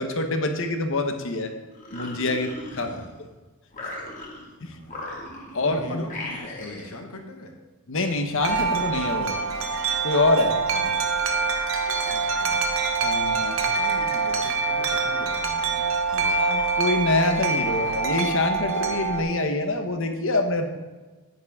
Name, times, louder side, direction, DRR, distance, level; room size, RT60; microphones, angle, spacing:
voice 1, 0.0-1.5 1.9-2.9 4.6-4.7 5.5-6.0 7.9-9.4 10.0-10.6 13.0-13.6 16.4-20.7, left 2 dB, 60° left, 6 dB, 1.1 m, -25 dB
sound 1, 1.7-3.3 3.7-4.5 4.9-5.7 6.1-7.0, left 2 dB, 35° left, 1.9 m, -37 dB
voice 2, 2.7-3.1 4.6-5.3 5.6-7.5 10.7-10.9 12.1-12.7 13.7-16.4, left 1 dB, 85° left, 4 dB, 1.4 m, -41 dB
Wind chime, 8.4-19.2, right 4 dB, 60° right, 1.0 m, -25 dB
9.6 x 9.5 x 3.6 m, 1.3 s
head